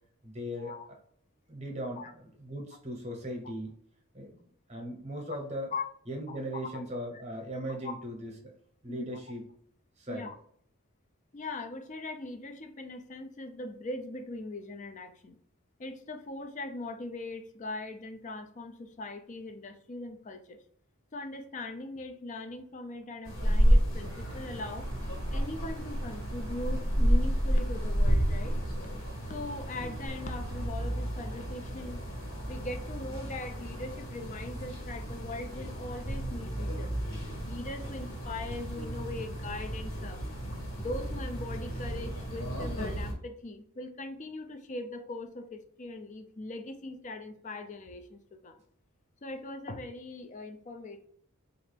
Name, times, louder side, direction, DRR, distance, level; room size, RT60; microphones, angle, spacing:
voice 1, 0.2-0.8 1.5-2.1 2.4-3.7 4.1-4.4 4.7-5.7 6.1-8.5 8.8-9.4 10.0-10.3, equal, 30° right, 1 dB, 0.8 m, -38 dB
voice 2, 6.3-6.8 7.8-7.9 8.9-9.1 10.1-10.3 11.3-15.4 15.8-20.6 21.1-24.9 25.3-28.6 29.3-32.0 32.5-36.9 37.4-40.2 40.8-48.6 49.2-51.1, left 2 dB, 35° left, 8 dB, 0.4 m, -40 dB
sound 1, 23.2-43.1, equal, 65° left, 1.4 m, -31 dB
sound 2, 23.9-30.7, right 2 dB, 60° right, 0.4 m, -48 dB
4.3 x 2.5 x 3.3 m, 0.63 s
head